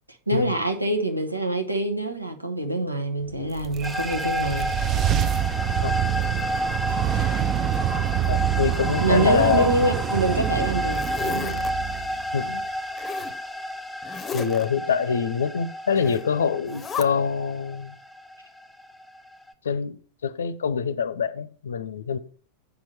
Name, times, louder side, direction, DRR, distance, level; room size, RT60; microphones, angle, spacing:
voice 1, 0.3-4.7 6.9-7.0 9.0-11.7, right 1 dB, 85° right, 1.3 m, -25 dB
sound 1, 3.3-12.6, right 11 dB, 30° right, 0.6 m, -26 dB
sound 2, 3.8-19.5, left 1 dB, 5° left, 1.3 m, -31 dB
voice 2, 8.3-9.7 12.3-12.7 14.3-18.0 19.6-22.2, left 6 dB, 65° left, 0.6 m, -25 dB
Zipper (clothing), 9.2-10.1 10.6-11.7 13.0-13.4 14.0-14.6 15.9-16.2 16.6-17.0, left 6 dB, 20° left, 0.8 m, -36 dB
8.2 x 6.1 x 4.4 m
figure-of-eight pair, 90°, 0 cm